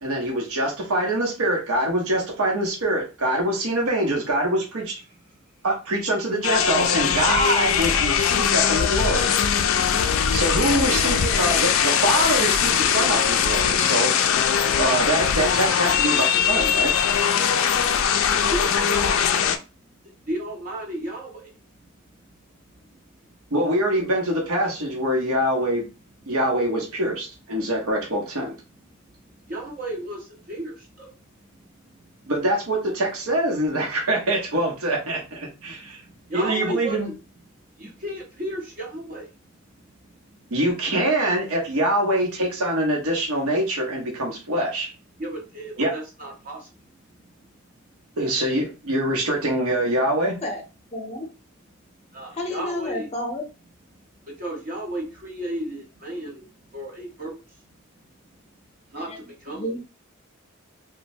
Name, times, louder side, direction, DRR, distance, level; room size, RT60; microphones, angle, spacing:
voice 1, 0.0-5.0 5.6-9.3 10.3-14.1 14.8-16.9 23.5-25.9 26.3-28.5 32.3-36.0 36.3-37.1 40.5-44.9 45.8-45.9 48.2-50.4, right 1 dB, 85° right, -1 dB, 0.8 m, -24 dB
sound 1, 6.4-19.6, left 8 dB, 65° left, 0.3 m, -21 dB
voice 2, 18.3-19.3 20.2-21.5 22.1-22.2 29.4-31.1 31.5-32.3 35.8-37.1 37.8-39.3 39.7-39.8 40.3-40.5 45.2-46.8 47.2-47.3 52.1-53.1 54.2-57.3 58.9-59.8, right 1 dB, 40° right, -1 dB, 0.7 m, -34 dB
voice 3, 50.9-51.3 52.3-53.5 59.0-59.2 59.5-59.8, left 1 dB, 30° left, 3 dB, 0.6 m, -30 dB
3.0 x 2.1 x 2.6 m, 0.31 s
head